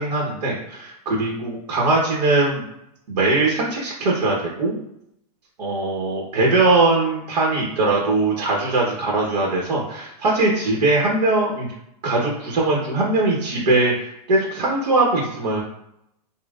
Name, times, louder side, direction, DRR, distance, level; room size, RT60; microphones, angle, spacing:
voice 1, 0.0-2.6 3.1-4.7 5.6-11.7 12.0-15.6, right 2 dB, 85° right, -2 dB, 1.2 m, -21 dB
5.3 x 2.5 x 2.4 m, 0.80 s
supercardioid pair, 175°, 20 cm